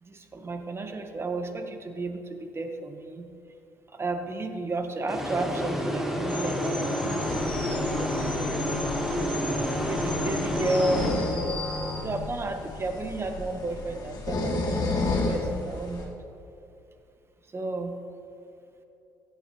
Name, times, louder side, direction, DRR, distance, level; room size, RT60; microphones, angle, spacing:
voice 1, 0.0-3.3 3.9-11.6 12.0-16.1 17.5-18.0, right 2 dB, 30° right, 6 dB, 1.3 m, -33 dB
sound 1, 5.1-11.8, equal, 5° right, 1.6 m, -30 dB
sound 2, 6.3-12.0, left 3 dB, 20° left, 2.9 m, -34 dB
sound 3, 7.3-16.0, left 2 dB, 50° left, 2.3 m, -33 dB
15.5 x 9.2 x 3.2 m, 2.6 s
hypercardioid pair, 60°, 8 cm